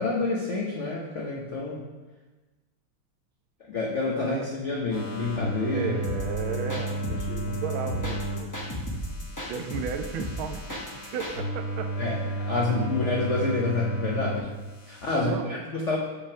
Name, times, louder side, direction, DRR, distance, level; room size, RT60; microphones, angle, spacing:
voice 1, 0.0-1.8 3.7-6.0 6.5-6.8 7.3-7.6 12.0-14.5 14.9-16.0, left 3 dB, 85° left, -2 dB, 0.6 m, -28 dB
voice 2, 4.1-4.5 5.7-8.6 9.5-12.0 12.7-12.8 15.1-15.6, right 7 dB, 75° right, 7 dB, 1.3 m, -34 dB
sound 1, 4.9-8.4 8.7-14.4 14.7-15.2, right 1 dB, 65° left, 1.9 m, -33 dB
sound 2, 6.0-11.4, left 1 dB, 20° left, 0.4 m, -35 dB
5.5 x 5.1 x 5.8 m, 1.2 s
omnidirectional pair, 2.4 m